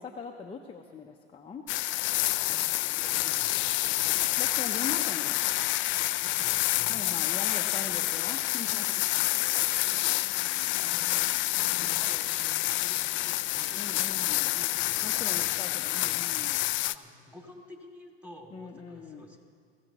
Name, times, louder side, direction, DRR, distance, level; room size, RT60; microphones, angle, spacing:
voice 1, 0.0-1.7 4.4-5.7 6.9-9.0 13.8-14.5 15.0-16.6 18.5-19.2, left 5 dB, 15° left, 1 dB, 0.9 m, -41 dB
sound 1, 1.7-16.9, left 18 dB, 40° left, 0.4 m, -28 dB
voice 2, 2.4-4.2 6.2-7.2 7.7-8.1 9.2-10.2 10.5-11.4 11.8-14.1 14.5-19.4, left 1 dB, 5° right, 0 dB, 2.7 m, -51 dB
22.0 x 16.0 x 3.0 m, 2.2 s
supercardioid pair, 100°, 31 cm